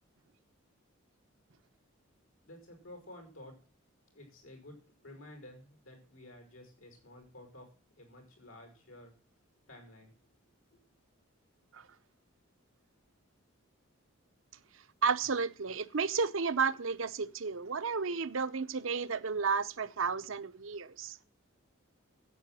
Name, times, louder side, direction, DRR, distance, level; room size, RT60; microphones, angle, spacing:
voice 1, 2.4-3.5 4.1-4.7 5.0-7.7 8.0-9.1 9.7-10.1 10.7-10.8, left 1 dB, 85° left, 6.1 m, -52 dB
voice 2, 15.0-21.2, right 5 dB, 65° right, 0.8 m, -32 dB
11.0 x 8.4 x 7.7 m
head